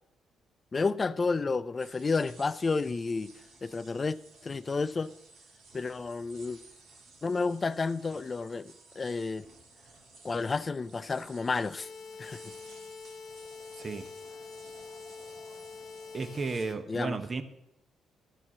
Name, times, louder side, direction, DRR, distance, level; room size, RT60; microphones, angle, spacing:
voice 1, 0.7-3.3 3.6-4.2 4.4-5.1 5.7-6.6 7.2-9.5 10.2-11.9 12.2-12.4 16.9-17.4, left 4 dB, 30° left, 0.4 m, -31 dB
sound 1, 1.8-16.7, right 3 dB, 75° right, 2.0 m, -55 dB
sound 2, 11.7-16.7, left 5 dB, 60° left, 1.1 m, -45 dB
voice 2, 13.7-14.1 16.1-17.4, right 4 dB, 35° right, 0.9 m, -33 dB
12.5 x 4.4 x 7.3 m
cardioid pair, 90°, 0 cm